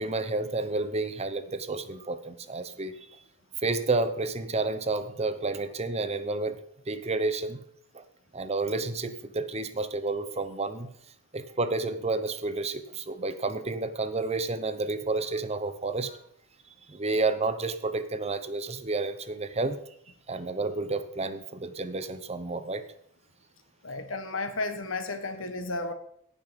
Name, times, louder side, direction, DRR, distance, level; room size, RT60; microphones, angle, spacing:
voice 1, 0.0-3.0 3.6-6.6 6.9-7.6 7.9-8.0 8.3-10.9 11.3-16.2 16.9-19.8 20.3-22.8, right 3 dB, 30° right, 10 dB, 0.8 m, -30 dB
voice 2, 23.8-25.9, left 2 dB, 70° left, 8 dB, 1.5 m, -33 dB
18.0 x 6.2 x 5.2 m, 0.69 s
head